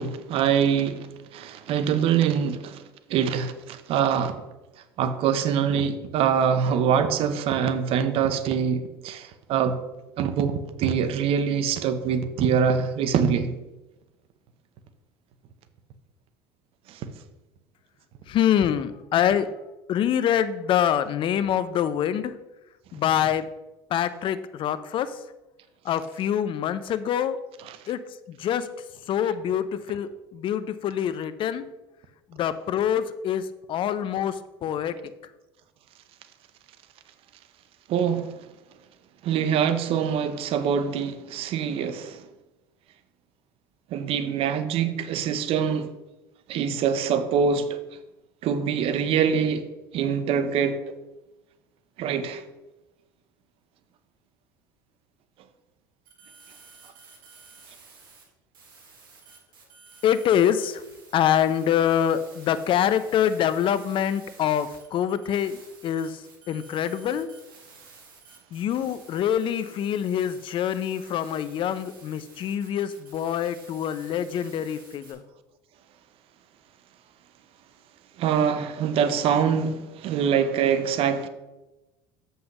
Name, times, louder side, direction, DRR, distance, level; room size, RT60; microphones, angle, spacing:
voice 1, 0.0-2.8 3.1-4.4 5.0-9.8 10.2-13.5 16.9-17.1 27.7-27.8 37.9-38.3 39.2-42.3 43.9-45.9 46.5-47.8 48.4-49.6 49.9-50.8 52.0-52.4 78.2-81.3, right 7 dB, 55° right, 0.8 m, -24 dB
voice 2, 18.3-19.5 19.9-22.3 22.9-23.4 23.9-25.2 25.8-27.4 27.9-28.0 28.3-28.7 29.1-31.7 32.3-35.0 60.0-60.8 61.1-66.2 66.5-67.3 68.5-75.2, left 9 dB, 50° left, 0.6 m, -25 dB
sound 1, 56.1-58.2 58.5-75.1, right 4 dB, 85° right, 2.0 m, -51 dB
7.7 x 5.6 x 5.4 m
hypercardioid pair, 75°, 11 cm